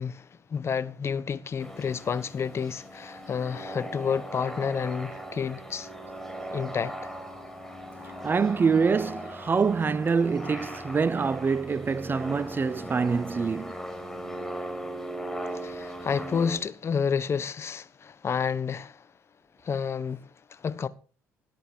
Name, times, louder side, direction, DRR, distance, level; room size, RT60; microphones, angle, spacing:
voice 1, 0.0-5.9 6.5-7.1 15.5-19.0 19.6-20.9, left 6 dB, 45° left, 1.3 m, -30 dB
sound 1, 1.6-16.6, equal, 5° left, 5.1 m, -39 dB
voice 2, 8.2-13.7, right 5 dB, 35° right, 0.7 m, -25 dB
18.0 x 7.9 x 5.0 m
supercardioid pair, 65°, 6 cm